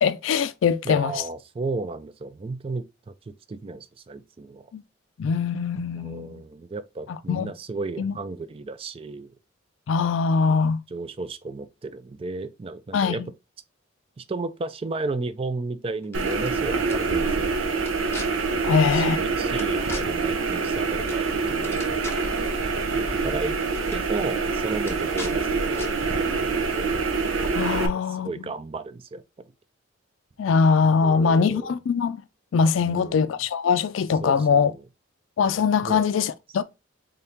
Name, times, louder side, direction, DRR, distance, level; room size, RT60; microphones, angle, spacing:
voice 1, 0.0-1.1 4.7-4.8 5.2-6.4 7.3-7.5 8.0-8.2 9.9-10.8 12.9-13.3 18.6-19.2 27.5-28.3 30.4-32.2 32.5-34.7 35.4-36.6, left 5 dB, 75° left, 0.3 m, -22 dB
voice 2, 0.8-4.7 5.9-9.3 10.5-10.6 10.9-13.2 14.2-17.5 18.7-21.8 22.9-23.6 23.9-26.9 27.8-29.2 31.0-31.7 32.8-33.3 34.2-34.8 35.8-36.1, right 3 dB, 30° right, 0.3 m, -34 dB
sound 1, 16.0-16.5 16.9-17.0 17.8-18.3 19.6-20.0 21.1-21.3 21.5-22.4 23.3-23.5 23.7-24.0 24.8-25.3 25.7-25.9, left 3 dB, 15° left, 0.8 m, -38 dB
sound 2, 16.1-27.9, right 4 dB, 85° right, 0.8 m, -25 dB
3.9 x 3.5 x 2.7 m
head